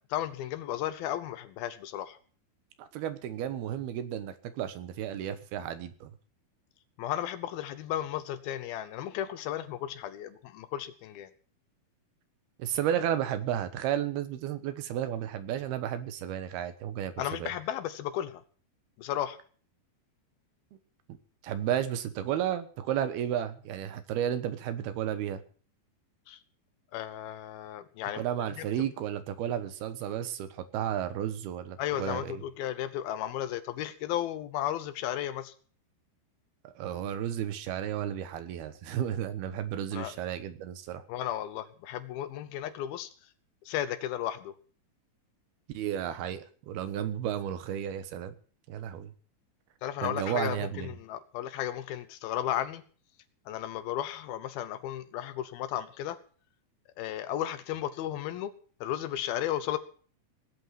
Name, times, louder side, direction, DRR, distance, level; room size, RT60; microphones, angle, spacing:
voice 1, 0.1-2.2 7.0-11.3 17.2-18.4 19.0-19.4 26.3-26.4 26.9-28.3 28.6-28.7 31.8-35.5 39.9-40.1 41.1-43.1 43.7-44.5 49.8-52.8 53.5-56.2 57.0-58.5 58.8-59.8, left 12 dB, 80° left, 12 dB, 2.8 m, -34 dB
voice 2, 2.8-6.1 12.6-17.1 17.4-17.5 21.4-25.4 28.1-32.3 36.6-41.0 45.7-48.3 48.7-49.1 50.0-50.9, right 10 dB, 85° right, 11 dB, 3.2 m, -33 dB
19.0 x 8.4 x 7.5 m, 0.43 s
omnidirectional pair, 4.3 m